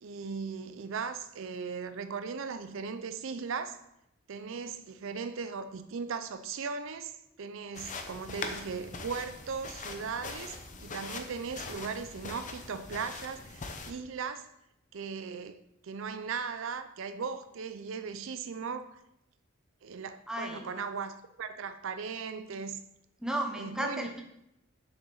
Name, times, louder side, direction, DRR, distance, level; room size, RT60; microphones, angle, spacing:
voice 1, 0.0-3.8 4.3-14.4 14.9-19.0 19.8-22.8 23.6-24.1, right 5 dB, 70° right, 0.5 m, -38 dB
sound 1, 7.7-13.9, left 4 dB, 40° left, 0.8 m, -42 dB
voice 2, 20.3-20.7 23.2-24.2, right 1 dB, 5° right, 0.9 m, -34 dB
7.1 x 6.5 x 3.9 m
head